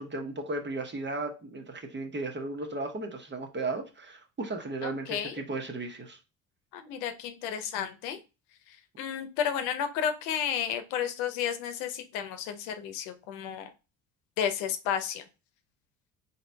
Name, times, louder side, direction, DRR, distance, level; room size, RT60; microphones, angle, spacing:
voice 1, 0.0-6.2, right 2 dB, 30° right, 4 dB, 1.1 m, -35 dB
voice 2, 4.8-5.4 6.7-8.2 8.7-13.7 14.4-15.2, left 8 dB, 85° left, 8 dB, 0.8 m, -32 dB
4.0 x 2.9 x 3.4 m, 0.29 s
supercardioid pair, 75°, 39 cm